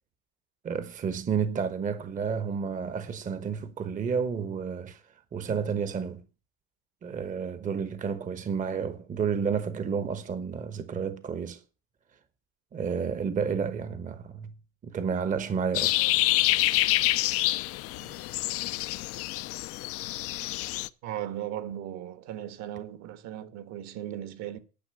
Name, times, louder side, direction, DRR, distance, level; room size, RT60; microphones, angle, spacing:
voice 1, 0.6-5.0 5.3-6.2 7.0-11.6 12.7-14.5 14.8-15.9 18.0-18.2, right 6 dB, 25° right, 1.0 m, -31 dB
sound 1, 15.7-20.9, left 18 dB, 45° left, 0.6 m, -27 dB
voice 2, 21.0-24.6, right 11 dB, 55° right, 1.5 m, -37 dB
10.5 x 5.9 x 8.8 m
supercardioid pair, 110°, 33 cm